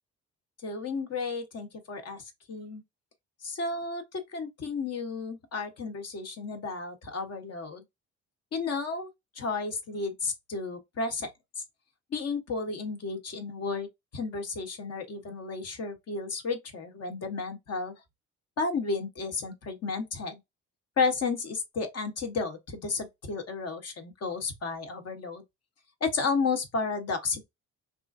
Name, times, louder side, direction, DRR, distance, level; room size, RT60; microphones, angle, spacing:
voice 1, 0.6-2.8 3.4-7.8 8.5-9.1 9.3-11.3 12.1-13.9 14.1-17.9 18.6-20.4 21.0-25.4 26.0-27.4, left 4 dB, 55° left, 1.1 m, -32 dB
3.5 x 2.5 x 2.5 m
cardioid pair, 90°, 30 cm